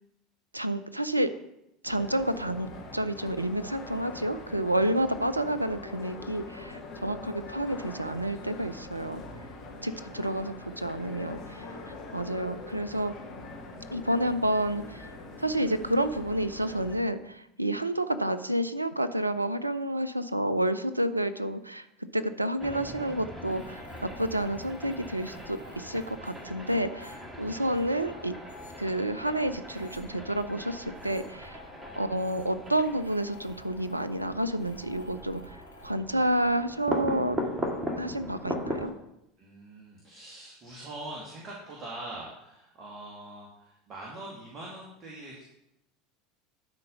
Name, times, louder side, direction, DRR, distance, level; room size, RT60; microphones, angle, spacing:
voice 1, 0.5-1.3 1.8-9.2 9.8-11.7 12.1-13.2 13.9-15.1 15.4-21.9 22.1-28.3 28.8-31.6 32.0-35.6 35.8-37.4 38.0-38.9, right 1 dB, 90° right, 13 dB, 0.4 m, -29 dB
sound 1, 1.8-16.9, left 2 dB, 50° left, 2.5 m, -43 dB
voice 2, 9.7-10.5 11.9-12.2 31.8-32.2 39.4-45.4, right 2 dB, 35° right, -3 dB, 2.1 m, -44 dB
sound 2, 22.6-38.9, equal, 20° right, 1.9 m, -39 dB
sound 3, 23.5-35.9, left 4 dB, 85° left, 1.1 m, -53 dB
11.5 x 4.4 x 5.4 m, 0.84 s
figure-of-eight pair, 75°, 0 cm